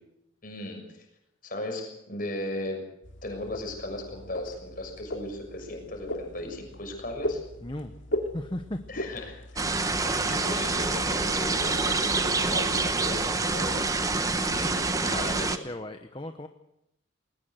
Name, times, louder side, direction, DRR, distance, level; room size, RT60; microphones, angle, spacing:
voice 1, 0.4-1.1 1.4-2.8 3.2-7.4 8.9-13.9 14.3-15.6, left 1 dB, 45° left, 3 dB, 6.6 m, -37 dB
sound 1, 3.0-11.3, left 1 dB, 65° left, 2.7 m, -38 dB
voice 2, 7.6-8.0 8.3-9.1 15.0-16.5, left 1 dB, 25° left, 7 dB, 0.9 m, -37 dB
sound 2, 9.6-15.6, right 3 dB, 15° right, 1.0 m, -27 dB
21.0 x 19.5 x 7.9 m, 0.81 s
head